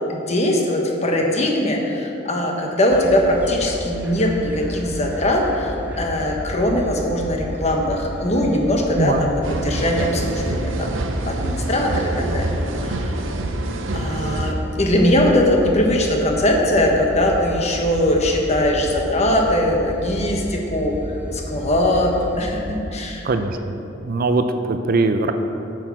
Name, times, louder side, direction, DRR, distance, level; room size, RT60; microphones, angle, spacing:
voice 1, 0.1-10.9 11.3-12.5 12.8-13.1 13.9-21.0 21.3-23.3, left 1 dB, 35° left, 0 dB, 1.2 m, -20 dB
sound 1, 2.9-22.8, equal, 10° right, 1.2 m, -32 dB
voice 2, 8.9-9.3 23.2-23.8 24.0-25.3, right 3 dB, 50° right, 8 dB, 0.5 m, -21 dB
sound 2, 9.4-14.5, right 2 dB, 85° right, 0.7 m, -26 dB
8.8 x 6.3 x 5.7 m, 2.8 s
head